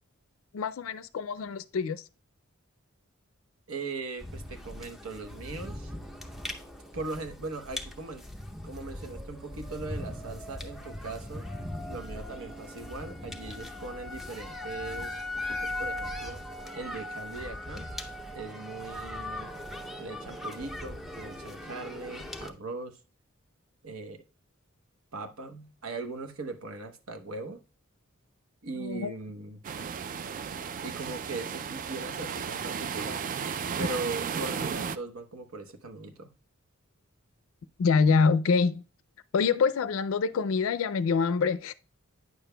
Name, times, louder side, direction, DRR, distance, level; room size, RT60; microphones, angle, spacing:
voice 1, 0.5-2.0 28.8-29.1 37.8-38.8 39.3-41.7, left 5 dB, 65° left, 0.4 m, -25 dB
voice 2, 3.7-5.9 6.9-8.2 8.6-11.5 11.9-16.4 16.7-17.9 18.3-19.5 20.0-23.0 23.8-24.2 25.1-27.6 28.6-29.6 30.8-33.2 33.8-36.3, right 3 dB, 80° right, 0.9 m, -39 dB
sound 1, 4.2-22.5, left 1 dB, ahead, 0.6 m, -39 dB
sound 2, 29.6-35.0, right 6 dB, 40° right, 0.3 m, -34 dB
9.4 x 6.8 x 2.2 m
head